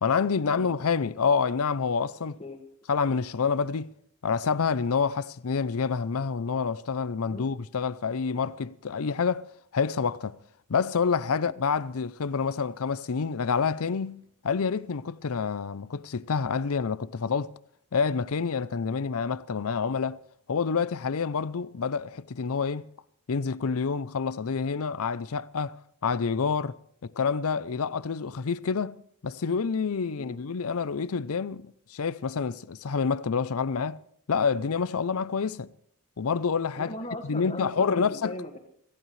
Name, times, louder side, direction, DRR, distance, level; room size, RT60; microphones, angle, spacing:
voice 1, 0.0-2.4 2.9-3.9 4.2-9.5 9.7-10.4 10.7-17.5 17.9-20.2 20.5-22.9 23.3-25.8 26.0-26.8 27.0-29.0 29.2-34.0 34.3-35.7 36.2-36.9 37.3-38.3, left 5 dB, 70° left, 0.6 m, -28 dB
voice 2, 36.8-38.6, left 1 dB, 30° left, 1.9 m, -38 dB
26.0 x 15.5 x 3.3 m
head